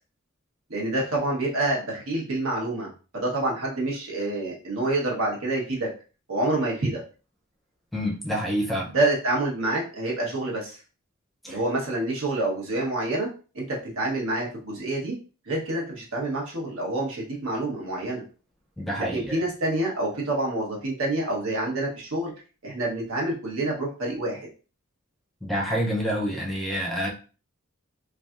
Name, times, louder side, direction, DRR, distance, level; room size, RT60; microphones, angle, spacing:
voice 1, 0.7-5.9 6.3-7.0 8.9-10.8 11.5-13.3 13.5-15.1 15.5-18.2 19.0-22.3 22.6-24.5, right 2 dB, 80° right, -2 dB, 1.1 m, -27 dB
voice 2, 7.9-8.9 11.4-11.6 18.8-19.3 25.4-27.1, equal, ahead, -2 dB, 0.6 m, -27 dB
3.4 x 2.4 x 2.4 m, 0.36 s
head